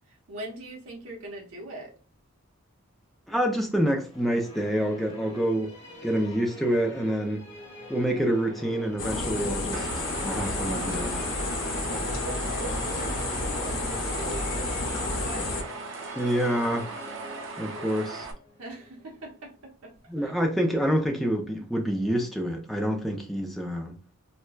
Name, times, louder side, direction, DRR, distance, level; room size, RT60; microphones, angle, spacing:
voice 1, 0.1-1.9 8.1-8.4 11.9-15.5 17.6-18.0 18.6-20.3, right 1 dB, 75° right, 0.9 m, -43 dB
voice 2, 3.3-5.7 6.0-7.4 7.9-11.3 16.2-16.9 17.6-18.3 20.1-23.9, equal, ahead, 0.5 m, -27 dB
Musical instrument, 3.9-19.4, left 1 dB, 30° left, 0.9 m, -45 dB
sound 1, 9.0-15.6, left 2 dB, 65° left, 0.7 m, -30 dB
sound 2, 9.7-18.3, right 4 dB, 60° right, 0.5 m, -39 dB
4.3 x 2.1 x 2.3 m
head